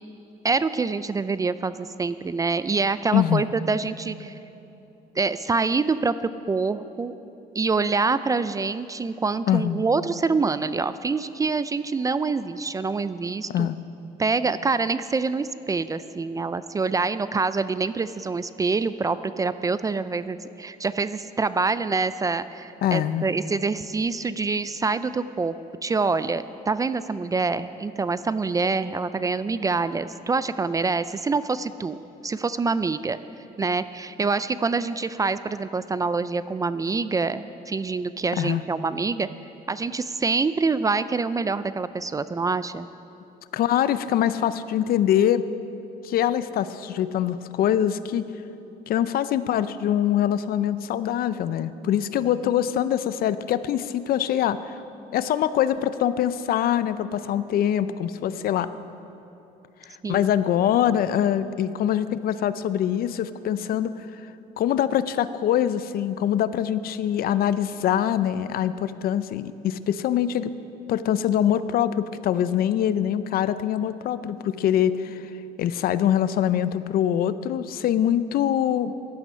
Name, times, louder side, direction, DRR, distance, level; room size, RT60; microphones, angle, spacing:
voice 1, 0.4-4.4 5.2-7.1 7.6-13.7 14.2-25.6 25.8-32.0 32.2-33.2 33.6-39.3 39.7-42.9 60.0-60.3, right 4 dB, 20° right, 14 dB, 0.4 m, -26 dB
voice 2, 3.1-3.4 9.5-9.8 13.5-13.8 22.8-23.3 38.4-38.6 43.5-45.4 46.0-48.2 48.9-54.8 55.1-58.7 60.1-64.1 64.6-70.5 70.9-75.2 75.6-78.9, left 10 dB, 60° left, 14 dB, 0.6 m, -24 dB
15.0 x 11.5 x 5.6 m, 2.9 s
cardioid pair, 110°, 17 cm